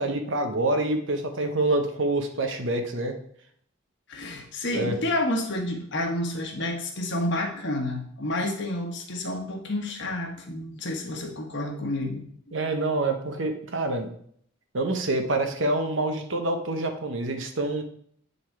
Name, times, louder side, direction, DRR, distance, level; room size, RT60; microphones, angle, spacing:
voice 1, 0.0-3.1 4.7-5.0 12.5-14.1 14.7-17.8, right 2 dB, 65° right, 6 dB, 1.0 m, -26 dB
voice 2, 4.1-12.2, left 1 dB, 60° left, 2 dB, 1.4 m, -29 dB
8.7 x 4.1 x 4.6 m, 0.62 s
head